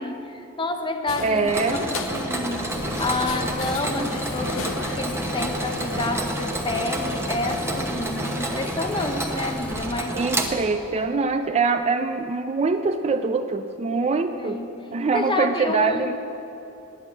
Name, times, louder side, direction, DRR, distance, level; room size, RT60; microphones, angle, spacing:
voice 1, 0.0-10.2 14.4-14.7 15.1-16.1, left 2 dB, 25° left, 6 dB, 0.8 m, -29 dB
sound 1, 1.1-6.1, left 4 dB, 65° left, 0.6 m, -36 dB
voice 2, 1.2-1.9 10.1-14.6 14.9-16.1, right 4 dB, 30° right, 7 dB, 0.4 m, -24 dB
Mechanisms, 1.5-11.0, right 1 dB, 10° right, 1.0 m, -30 dB
sound 2, 2.7-9.7, equal, 5° left, 1.0 m, -35 dB
10.5 x 8.3 x 8.6 m, 2.9 s
head